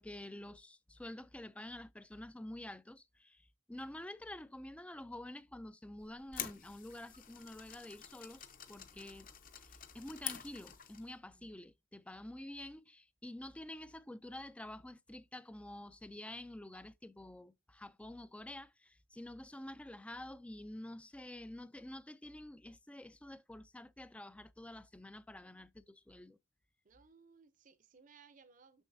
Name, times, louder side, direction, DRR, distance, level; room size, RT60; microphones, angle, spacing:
voice 1, 0.0-8.4 8.7-9.3 9.6-26.4, left 1 dB, 5° left, 0.3 m, -49 dB
sound 1, 6.0-11.1, left 10 dB, 40° left, 0.8 m, -48 dB
voice 2, 26.8-28.8, right 5 dB, 40° right, 0.6 m, -63 dB
7.1 x 6.1 x 2.6 m
head